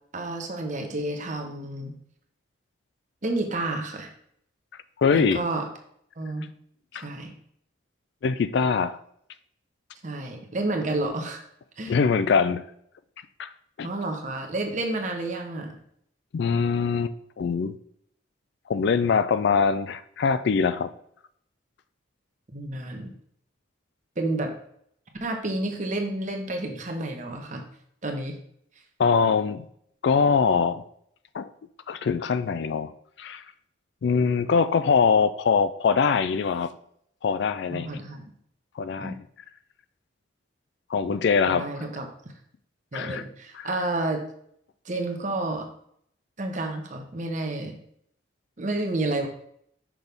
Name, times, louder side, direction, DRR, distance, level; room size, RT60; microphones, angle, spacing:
voice 1, 0.1-2.0 3.2-4.1 5.1-5.7 6.2-6.5 6.9-7.3 10.0-11.4 11.8-11.9 13.8-15.7 22.5-23.1 24.2-24.5 25.2-27.6 28.0-28.4 37.7-38.3 39.0-39.2 41.4-42.1 42.9-44.3 44.8-45.7 46.4-47.7 48.6-49.3, right 2 dB, 40° right, 4 dB, 0.9 m, -30 dB
voice 2, 5.0-5.4 6.9-7.1 8.2-9.0 11.9-12.6 13.4-13.5 13.8-13.9 16.3-17.8 18.7-20.9 29.0-29.7 30.0-30.8 31.3-31.5 31.9-32.9 33.2-33.4 34.0-36.7 37.2-38.0 38.8-39.2 40.9-41.7 42.9-43.2, left 5 dB, 60° left, 14 dB, 0.3 m, -23 dB
6.1 x 5.4 x 3.4 m, 0.69 s
head